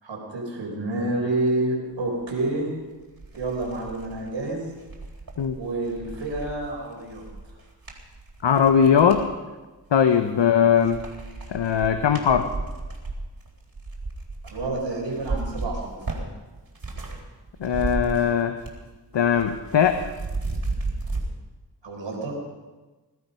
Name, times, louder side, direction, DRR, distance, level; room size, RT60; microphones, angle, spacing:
voice 1, 0.0-2.7 3.3-4.7 5.6-7.2 10.3-10.5 14.4-16.0 21.8-22.3, right 2 dB, 85° right, -1 dB, 4.9 m, -29 dB
sound 1, 2.6-2.7 3.1-9.3 9.8-10.5 10.8-17.2 17.5-18.9 19.1-21.2, right 3 dB, 55° right, 3.9 m, -34 dB
voice 2, 8.4-9.2 9.9-11.0 11.5-12.5 17.6-18.5 19.1-20.0, left 7 dB, 80° left, 8 dB, 1.0 m, -20 dB
21.5 x 12.0 x 5.5 m, 1.2 s
cardioid pair, 45°, 43 cm